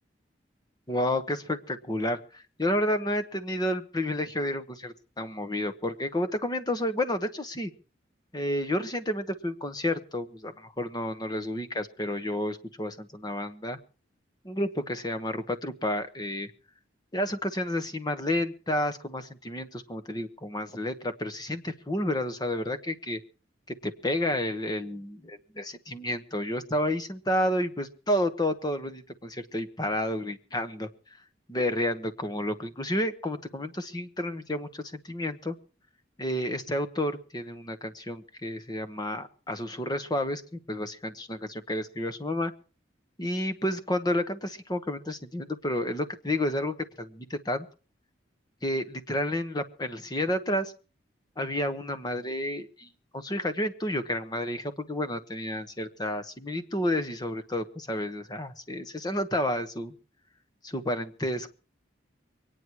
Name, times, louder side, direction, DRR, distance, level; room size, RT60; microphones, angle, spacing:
voice 1, 0.9-7.7 8.3-13.8 14.4-16.5 17.1-23.2 23.8-30.9 31.5-35.6 36.2-42.5 43.2-47.7 48.6-50.7 51.4-52.9 53.1-59.9 60.6-61.5, left 1 dB, 20° left, 9 dB, 1.1 m, -30 dB
23.5 x 9.7 x 4.6 m, 0.36 s
head